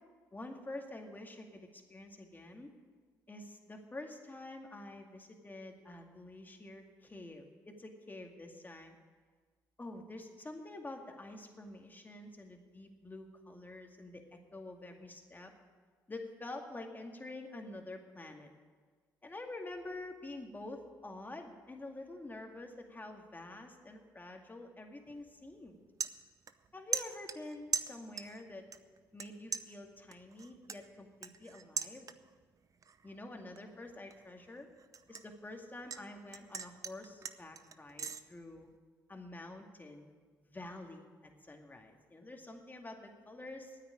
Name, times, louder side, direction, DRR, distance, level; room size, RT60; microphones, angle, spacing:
voice 1, 0.3-2.7 3.3-9.0 9.8-14.2 14.5-15.5 16.1-18.5 19.2-25.8 26.7-28.7 29.1-32.1 33.0-34.7 35.1-38.7 39.1-40.1 40.4-41.0 41.4-43.8, left 2 dB, 25° left, 3 dB, 2.2 m, -47 dB
sound 1, 25.1-25.3 25.6-26.7 26.9-28.4 28.7-29.3 29.5-32.4 32.8-33.2 33.6-36.0 36.3-38.2, right 6 dB, 45° right, 0.7 m, -40 dB
9.5 x 8.9 x 9.8 m, 1.5 s
supercardioid pair, 50°, 8 cm